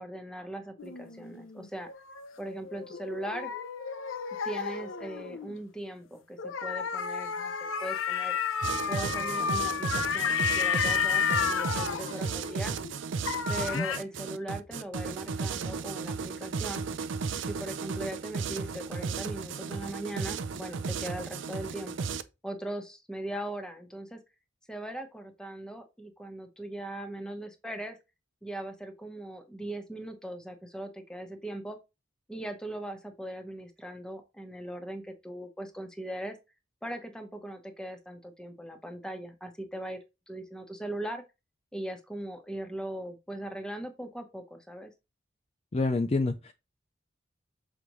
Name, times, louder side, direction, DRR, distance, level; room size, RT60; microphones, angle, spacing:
voice 1, 0.0-1.9 2.4-3.5 4.4-8.4 8.9-12.7 13.5-16.9 17.4-21.9 22.4-24.2 24.7-28.0 28.4-31.8 32.3-36.4 36.8-40.0 40.3-41.2 41.7-44.9, right 1 dB, 5° left, 1.0 m, -39 dB
sound 1, 0.8-5.5 6.4-12.9 13.3-14.0, left 7 dB, 85° left, 0.7 m, -32 dB
sound 2, 8.6-22.2, right 5 dB, 65° right, 0.5 m, -34 dB
voice 2, 45.7-46.5, left 3 dB, 30° left, 0.4 m, -27 dB
6.8 x 4.9 x 3.1 m
head